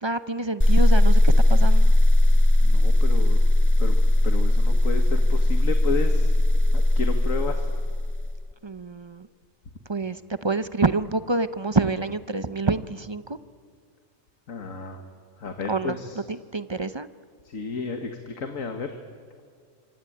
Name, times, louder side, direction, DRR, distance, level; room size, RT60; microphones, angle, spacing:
voice 1, 0.0-1.9 8.6-9.3 9.9-13.4 15.7-16.0 16.3-17.1, right 3 dB, 30° right, 13 dB, 0.5 m, -27 dB
sound 1, 0.6-8.4, left 1 dB, 10° left, 1.1 m, -18 dB
voice 2, 2.6-3.4 3.8-6.3 6.7-7.7 14.5-15.1 15.4-16.2 17.5-19.0, left 4 dB, 75° left, 6 dB, 2.0 m, -32 dB
26.0 x 25.0 x 8.8 m, 2.2 s
omnidirectional pair, 1.4 m